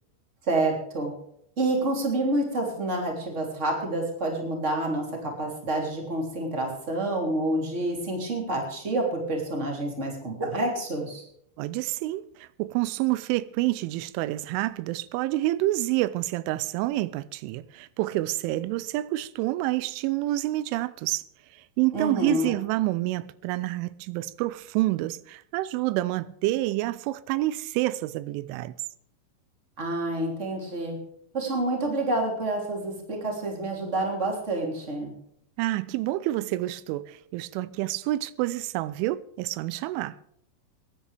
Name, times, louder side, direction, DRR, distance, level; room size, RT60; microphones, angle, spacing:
voice 1, 0.5-1.1 1.6-11.2 21.9-22.5 29.8-31.0 31.3-35.1, right 2 dB, 20° right, 2.7 m, -28 dB
voice 2, 11.6-21.2 21.5-28.7 35.6-40.2, right 17 dB, 90° right, 3.1 m, -28 dB
24.0 x 10.5 x 3.4 m
omnidirectional pair, 5.4 m